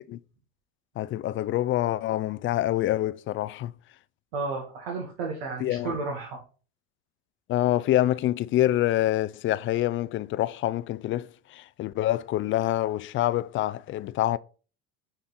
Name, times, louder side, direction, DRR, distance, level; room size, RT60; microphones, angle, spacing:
voice 1, 1.0-3.7 5.6-6.0 7.5-14.4, left 14 dB, 40° left, 0.4 m, -26 dB
voice 2, 4.3-6.4, right 4 dB, 90° right, 1.7 m, -32 dB
8.7 x 3.7 x 4.2 m
supercardioid pair, 95°, 30 cm